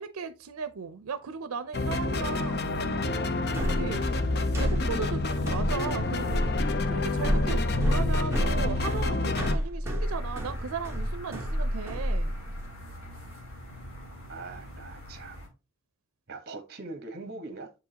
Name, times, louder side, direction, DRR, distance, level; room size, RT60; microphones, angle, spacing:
voice 1, 0.0-3.0 3.6-4.1 4.6-6.4 6.9-12.3, right 5 dB, 85° right, 0.5 m, -36 dB
sound 1, 1.7-9.6, left 3 dB, 50° left, 0.6 m, -28 dB
sound 2, 3.5-12.7, equal, 10° right, 1.2 m, -30 dB
sound 3, 10.0-15.5, equal, 75° left, 2.2 m, -44 dB
voice 2, 14.3-15.4 16.3-17.7, right 3 dB, 45° right, 1.1 m, -41 dB
7.0 x 4.7 x 2.8 m
head